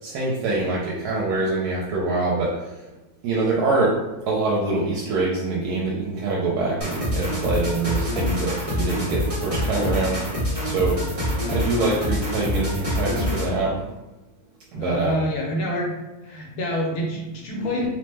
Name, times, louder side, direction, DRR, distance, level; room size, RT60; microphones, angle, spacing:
voice 1, 0.0-2.8 3.2-4.0 4.3-10.2 10.6-11.0 11.5-13.9 14.7-15.3 17.6-17.9, right 3 dB, 85° right, -4 dB, 1.1 m, -24 dB
sound 1, 6.8-13.6, left 1 dB, 30° right, 0.8 m, -26 dB
voice 2, 11.7-12.1 14.7-16.0 16.2-17.9, left 1 dB, 80° left, -1 dB, 1.2 m, -27 dB
2.9 x 2.1 x 3.2 m, 1.1 s
omnidirectional pair, 1.6 m